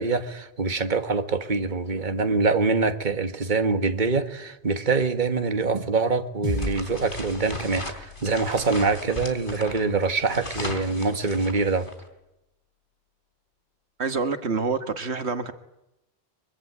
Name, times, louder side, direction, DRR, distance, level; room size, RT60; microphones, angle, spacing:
voice 1, 0.0-11.9, right 4 dB, 45° right, 8 dB, 1.8 m, -24 dB
sound 1, 6.4-11.0, left 1 dB, 25° right, 5.8 m, -38 dB
sound 2, 6.5-12.0, left 2 dB, 50° left, 3.8 m, -37 dB
voice 2, 14.0-15.5, right 4 dB, 85° right, 9 dB, 1.8 m, -27 dB
24.0 x 23.5 x 9.6 m, 0.90 s
omnidirectional pair, 1.1 m